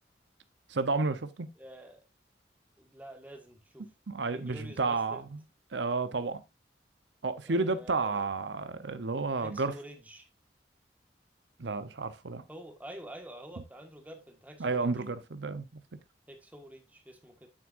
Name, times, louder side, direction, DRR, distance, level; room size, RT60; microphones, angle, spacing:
voice 1, 0.7-1.5 4.1-5.2 5.7-6.4 7.2-9.7 11.6-12.4 14.6-15.8, right 3 dB, 85° right, 0.8 m, -31 dB
voice 2, 1.6-2.0 2.8-3.9 4.3-5.2 7.5-8.3 9.4-10.3 12.5-14.9 16.3-17.5, right 1 dB, 10° right, 1.5 m, -48 dB
9.1 x 7.4 x 2.5 m
head